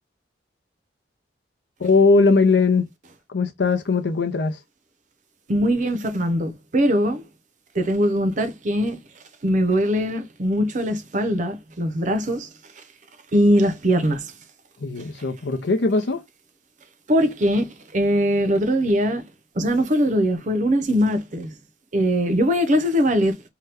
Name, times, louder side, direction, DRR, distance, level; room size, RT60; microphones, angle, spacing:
voice 1, 1.8-2.9 3.3-4.6 14.8-16.2, left 3 dB, 65° left, 0.6 m, -19 dB
voice 2, 5.5-7.2 7.7-9.0 9.4-12.5 13.3-14.3 17.1-19.2 19.6-21.5 21.9-23.4, equal, 45° right, 0.6 m, -21 dB
2.8 x 2.2 x 3.3 m
head